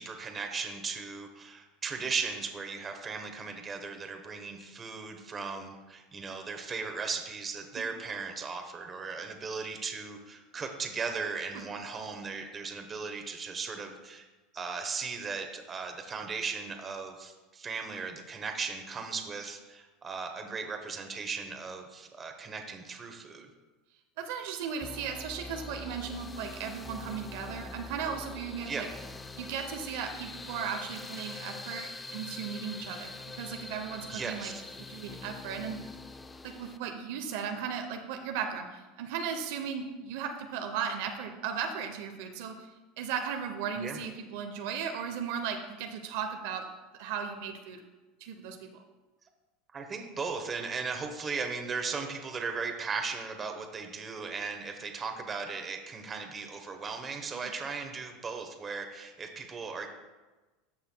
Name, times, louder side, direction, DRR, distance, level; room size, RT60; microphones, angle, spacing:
voice 1, 0.0-14.2 14.5-23.5 28.7-28.9 34.1-34.7 43.8-44.1 49.7-59.9, right 5 dB, 25° right, 5 dB, 1.0 m, -37 dB
voice 2, 24.2-28.9 29.3-34.5 34.9-35.8 36.4-42.7 43.0-46.7 47.0-47.8 48.2-48.8 57.4-57.5, right 7 dB, 70° right, 5 dB, 0.7 m, -36 dB
sound 1, 24.8-36.8, left 3 dB, 15° left, 0.4 m, -44 dB
13.5 x 5.6 x 2.2 m, 1.2 s
supercardioid pair, 125°, 0 cm